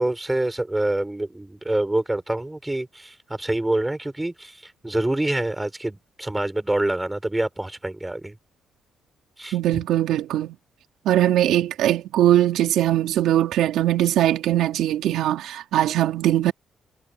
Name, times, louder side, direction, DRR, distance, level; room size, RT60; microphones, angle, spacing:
voice 1, 0.0-8.3 9.4-9.8, right 1 dB, 10° right, 6.4 m, -26 dB
voice 2, 9.5-10.6 11.0-16.5, right 13 dB, 85° right, 3.3 m, -21 dB
cardioid pair, 90°, 0 cm